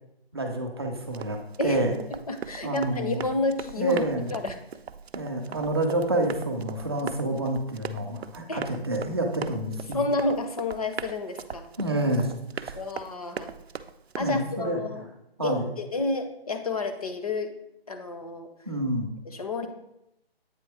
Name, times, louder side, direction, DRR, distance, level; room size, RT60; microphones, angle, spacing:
voice 1, 0.3-1.9 2.6-3.2 3.8-4.3 5.1-10.1 11.8-12.8 14.2-14.8 15.4-15.7 18.7-19.1 19.6-19.7, right 1 dB, 25° right, 1 dB, 0.6 m, -28 dB
Run, 1.1-14.4, right 7 dB, 85° right, 0.5 m, -40 dB
voice 2, 2.1-4.0 4.3-4.6 8.5-8.6 9.9-11.7 12.7-13.5 14.2-15.0 15.4-17.5 17.9-18.5 19.3-19.7, left 2 dB, 40° left, 7 dB, 0.6 m, -30 dB
8.3 x 3.1 x 4.8 m, 0.84 s
figure-of-eight pair, 160°, 31 cm